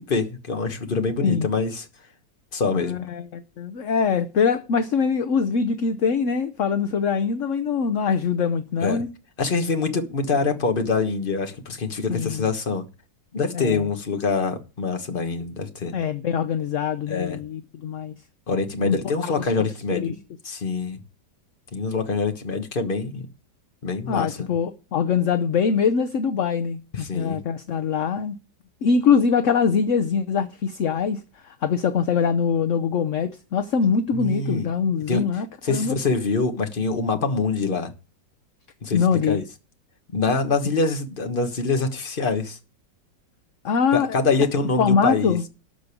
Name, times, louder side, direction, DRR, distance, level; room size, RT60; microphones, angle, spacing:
voice 1, 0.0-1.9 2.5-3.0 8.8-9.0 9.4-12.8 13.3-15.9 17.1-17.4 18.5-20.2 20.4-21.0 21.7-23.3 23.8-24.4 26.9-27.4 34.1-34.7 35.1-35.3 35.6-37.9 38.8-39.4 40.1-42.6 43.9-45.5, left 4 dB, 30° left, 1.4 m, -25 dB
voice 2, 2.7-9.1 12.1-12.5 13.5-13.9 15.9-18.1 18.8-19.0 19.2-19.4 19.9-20.1 24.1-28.4 28.8-36.0 38.9-39.4 43.6-44.2 44.8-45.4, left 6 dB, 55° left, 1.0 m, -23 dB
13.0 x 5.1 x 8.4 m
omnidirectional pair, 1.9 m